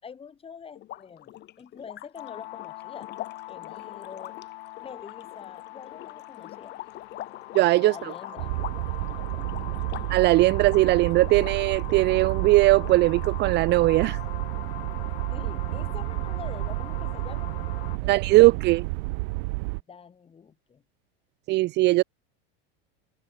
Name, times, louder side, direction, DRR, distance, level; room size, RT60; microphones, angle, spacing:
voice 1, 0.0-3.1 3.5-4.4 4.8-6.8 7.9-8.9 9.1-9.5 15.3-17.6 18.0-18.5 19.9-20.8, left 6 dB, 20° left, 5.1 m, -45 dB
sound 1, 0.8-12.4 12.7-13.5, left 14 dB, 35° left, 3.1 m, -44 dB
sound 2, 2.2-18.0, left 17 dB, 90° left, 3.3 m, -42 dB
voice 2, 7.5-7.9 10.1-14.2 18.1-18.8 21.5-22.0, right 19 dB, 35° right, 0.7 m, -19 dB
sound 3, 8.4-19.8, right 27 dB, 65° right, 1.0 m, -31 dB
supercardioid pair, 150°, 30 cm